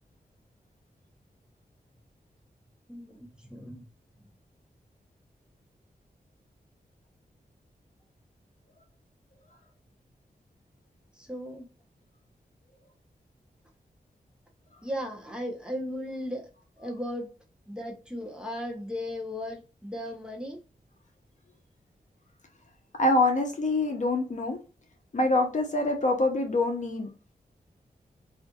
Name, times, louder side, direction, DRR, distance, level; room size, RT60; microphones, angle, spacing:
voice 1, 2.9-3.9 4.2-4.3 11.1-11.7 14.8-16.5 16.8-17.3 17.7-20.6, left 1 dB, 5° right, 0.8 m, -36 dB
voice 2, 23.0-24.6 25.1-27.3, left 2 dB, 50° left, 0.7 m, -25 dB
2.5 x 2.4 x 2.3 m
wide cardioid pair, 70°, 16 cm